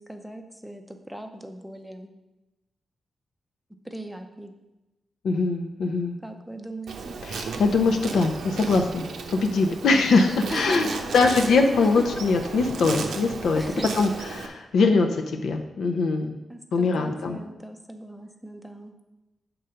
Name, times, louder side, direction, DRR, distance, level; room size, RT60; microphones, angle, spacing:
voice 1, 0.0-2.1 3.8-4.5 6.2-7.2 10.5-12.0 13.5-13.9 16.5-19.0, right 1 dB, ahead, 5 dB, 0.6 m, -38 dB
voice 2, 5.2-6.2 7.2-10.9 11.1-13.6 14.0-16.4 16.7-17.4, left 3 dB, 80° left, 4 dB, 0.6 m, -22 dB
Insect, 6.9-14.5, right 5 dB, 85° right, 0.7 m, -35 dB
7.9 x 3.9 x 5.6 m, 1.0 s
wide cardioid pair, 175°, 0 cm